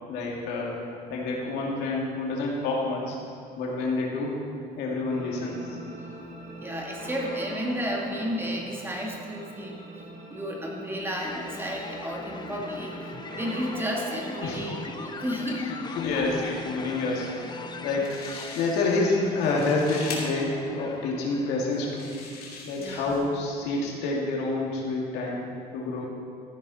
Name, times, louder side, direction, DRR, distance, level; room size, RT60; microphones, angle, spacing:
voice 1, 0.1-0.8 1.1-3.2 3.6-4.4 4.8-5.8 14.4-14.6 15.6-17.5 17.8-22.1 22.5-26.1, left 3 dB, 90° left, -2 dB, 2.4 m, -28 dB
sound 1, 5.1-17.8, right 2 dB, 85° right, 3.2 m, -43 dB
voice 2, 6.6-15.8 22.8-23.2, equal, 15° right, -1 dB, 2.0 m, -33 dB
sound 2, 11.1-22.2, left 4 dB, 25° left, 0.7 m, -41 dB
sound 3, 17.7-17.8 18.0-19.0 19.3-20.2 20.9-21.0 21.7-23.2, left 5 dB, 65° left, 2.7 m, -41 dB
14.5 x 9.9 x 4.2 m, 2.3 s
cardioid pair, 110°, 17 cm